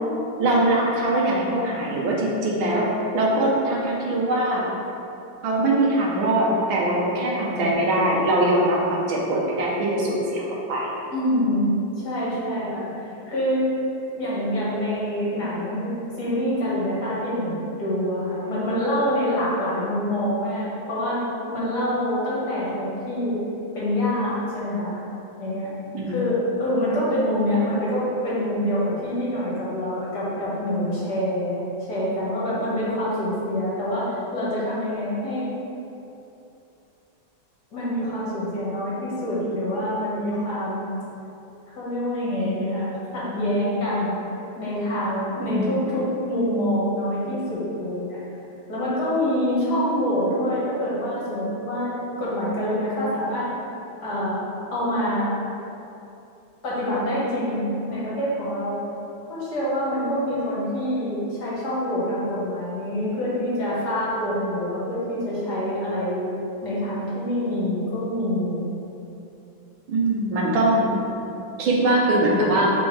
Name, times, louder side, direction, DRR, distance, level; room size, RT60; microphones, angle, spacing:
voice 1, 0.4-2.9 3.1-4.6 5.4-10.4 10.7-10.9 25.9-26.2 45.4-45.7 69.9-70.9 71.6-72.7, right 1 dB, 85° right, -3 dB, 1.8 m, -22 dB
voice 2, 11.1-12.9 13.3-13.7 14.2-15.9 16.2-17.5 17.8-23.4 23.7-25.0 25.4-25.7 26.1-31.6 31.9-35.5 37.7-40.9 41.8-44.2 44.6-48.2 48.7-53.5 54.0-54.4 54.7-55.3 56.6-58.8 59.3-66.3 66.6-68.7, equal, 55° left, -8 dB, 2.1 m, -26 dB
7.0 x 4.5 x 3.3 m, 2.9 s
omnidirectional pair, 2.2 m